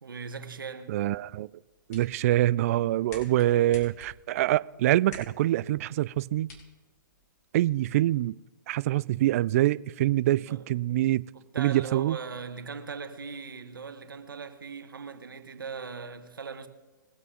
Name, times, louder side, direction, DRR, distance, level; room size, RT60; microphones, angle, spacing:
voice 1, 0.0-1.0 2.7-2.9 10.5-10.7 11.3-16.7, right 5 dB, 85° right, 1.4 m, -39 dB
voice 2, 0.9-1.5 1.9-6.5 7.5-8.3 8.7-11.2 11.6-12.2, right 15 dB, 45° right, 0.3 m, -25 dB
sound 1, 1.6-7.5, left 2 dB, 50° left, 4.1 m, -51 dB
21.5 x 8.1 x 3.8 m
hypercardioid pair, 135°, 11 cm